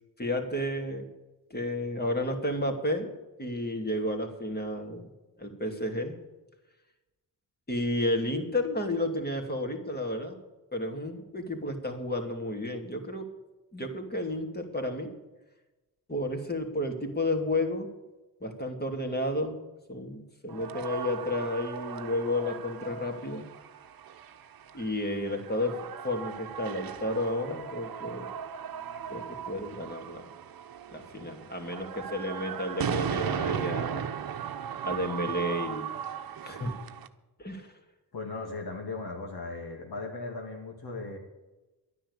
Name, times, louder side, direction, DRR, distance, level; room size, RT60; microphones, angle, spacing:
voice 1, 0.2-1.1 1.5-3.1 3.4-5.1 5.4-6.1 7.7-10.4 10.7-13.3 13.7-15.1 16.1-17.9 18.4-19.6 19.9-23.5 24.7-25.8 26.0-28.3 29.1-30.3 30.9-34.1 34.8-35.9 36.4-36.7 37.4-37.7, left 1 dB, 25° left, 4 dB, 2.7 m, -32 dB
sound 1, 20.5-37.1, right 8 dB, 60° right, 1.0 m, -37 dB
voice 2, 38.1-41.2, left 3 dB, 70° left, 0 dB, 2.6 m, -37 dB
11.5 x 9.9 x 8.2 m, 1.1 s
cardioid pair, 85°, 40 cm